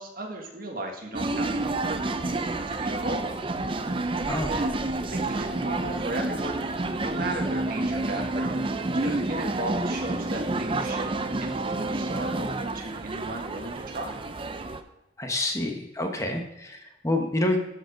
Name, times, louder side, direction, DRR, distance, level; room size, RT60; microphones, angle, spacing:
voice 1, 0.0-3.5 4.2-6.6 7.0-8.6 8.9-14.2, right 1 dB, 55° right, 2 dB, 1.6 m, -36 dB
sound 1, 1.1-14.8, right 2 dB, 30° right, 0.6 m, -29 dB
voice 2, 15.2-17.6, left 1 dB, 15° left, 4 dB, 1.0 m, -28 dB
12.5 x 5.0 x 5.1 m, 0.94 s
head